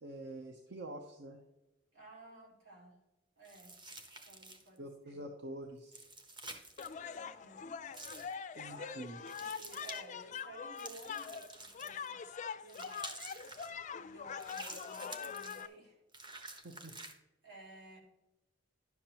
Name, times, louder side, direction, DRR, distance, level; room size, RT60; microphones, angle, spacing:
voice 1, 0.0-1.4 4.8-6.0 8.5-9.2 16.6-16.9, right 1 dB, 65° right, 4 dB, 0.8 m, -46 dB
voice 2, 1.9-2.9 3.4-3.8 4.3-4.8 5.1-5.2 7.1-7.8 8.7-12.9 13.8-16.0 16.4-16.6 17.4-18.0, right 2 dB, 85° right, -3 dB, 3.2 m, -55 dB
sound 1, 3.4-4.8 5.8-6.9 7.9-8.3 9.3-10.0 10.8-12.1 12.7-13.7 14.4-15.7 16.1-17.1, right 2 dB, 25° right, 0.9 m, -49 dB
sound 2, 6.8-15.7, left 6 dB, 40° left, 0.3 m, -43 dB
11.0 x 7.2 x 2.9 m, 0.98 s
head